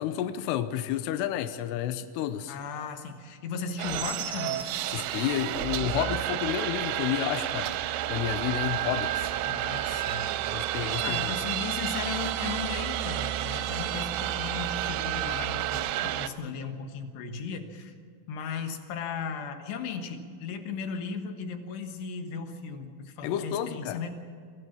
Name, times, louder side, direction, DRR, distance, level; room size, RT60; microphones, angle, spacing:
voice 1, 0.0-2.6 4.9-7.8 8.1-9.1 10.5-11.3 23.2-24.0, left 11 dB, 85° left, 10 dB, 2.4 m, -30 dB
voice 2, 2.5-4.7 8.8-9.1 9.4-10.3 10.6-17.9 18.3-24.1, left 5 dB, 65° left, 6 dB, 3.1 m, -36 dB
sound 1, 3.8-16.3, right 12 dB, 80° right, 2.9 m, -30 dB
24.0 x 15.0 x 7.2 m, 2.2 s
omnidirectional pair, 5.7 m